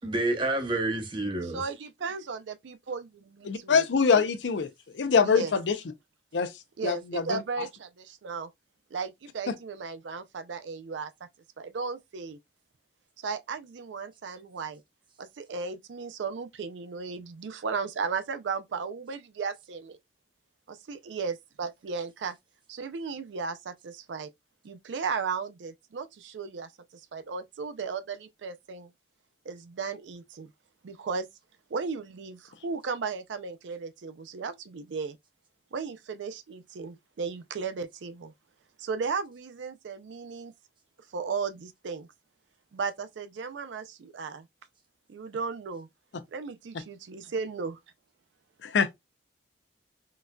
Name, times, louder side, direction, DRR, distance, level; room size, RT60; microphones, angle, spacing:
voice 1, 0.0-1.6, right 2 dB, 25° right, 0.7 m, -28 dB
voice 2, 1.5-2.4 2.6-3.8 5.2-5.5 6.8-8.5 8.9-11.1 11.6-12.4 13.2-14.8 15.2-20.0 20.7-21.3 21.6-22.4 22.7-24.3 24.6-28.9 29.5-30.5 30.8-31.3 31.7-35.2 35.7-38.3 38.8-40.5 41.1-42.1 42.7-44.5 45.1-45.9 46.3-47.8, right 5 dB, 80° right, 0.4 m, -35 dB
voice 3, 3.5-4.7 4.9-5.7 6.3-6.5 6.8-7.4 9.5-9.6 48.6-48.9, left 5 dB, 75° left, 0.5 m, -24 dB
3.8 x 2.6 x 2.2 m
head